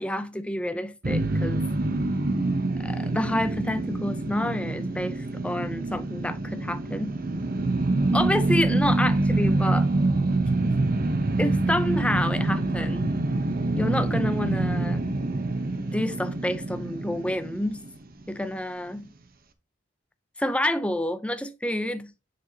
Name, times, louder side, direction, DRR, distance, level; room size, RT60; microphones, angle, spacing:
voice 1, 0.0-1.6 2.8-7.2 8.1-9.9 10.6-10.8 11.4-13.2 13.7-15.0 15.8-17.8 18.3-19.1 20.4-22.1, left 1 dB, 5° left, 0.6 m, -28 dB
sound 1, 1.0-18.2, right 2 dB, 50° right, 0.9 m, -26 dB
7.7 x 6.1 x 2.9 m
head